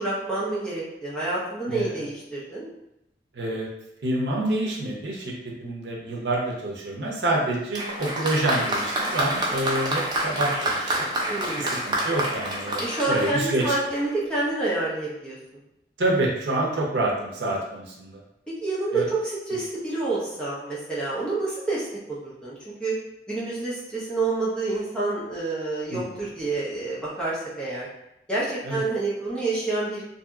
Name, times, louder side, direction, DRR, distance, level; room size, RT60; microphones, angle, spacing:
voice 1, 0.0-2.7 11.3-11.8 12.8-15.4 16.8-16.9 18.6-23.0 23.3-27.9 28.3-30.0, right 2 dB, 5° left, -8 dB, 0.8 m, -28 dB
voice 2, 1.7-2.0 3.3-3.7 4.0-11.1 11.6-13.7 16.0-18.2 18.9-19.1 25.9-26.0 28.6-28.8, right 2 dB, 80° right, -2 dB, 0.7 m, -27 dB
Applause, 7.7-14.2, right 1 dB, 25° right, 0.4 m, -28 dB
2.7 x 2.7 x 2.3 m, 0.83 s
head